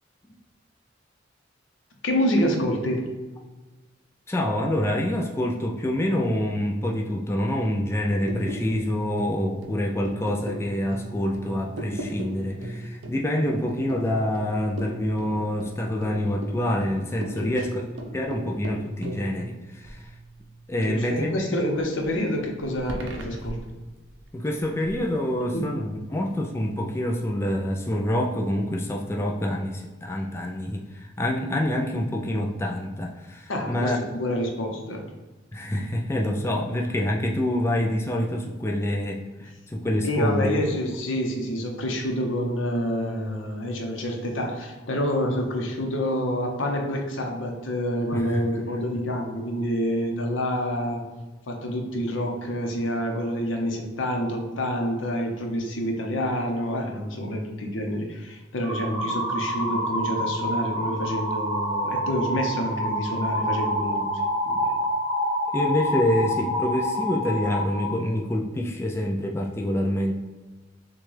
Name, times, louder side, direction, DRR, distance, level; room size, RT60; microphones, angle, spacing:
voice 1, 2.0-3.1 17.3-17.8 20.9-23.6 25.5-25.6 33.5-35.0 40.0-51.0 51.5-64.1 64.5-64.8, equal, 80° left, 2 dB, 0.8 m, -27 dB
voice 2, 4.3-17.8 18.1-20.1 20.7-21.3 24.3-34.0 35.5-40.5 48.1-48.4 65.5-70.1, left 1 dB, 15° left, 0 dB, 0.3 m, -26 dB
sound 1, 8.0-21.4 21.8-25.1 25.5-25.9, right 1 dB, 75° right, 0.7 m, -38 dB
sound 2, 58.6-67.9, equal, 10° right, 0.7 m, -27 dB
6.0 x 2.3 x 3.2 m, 1.2 s
head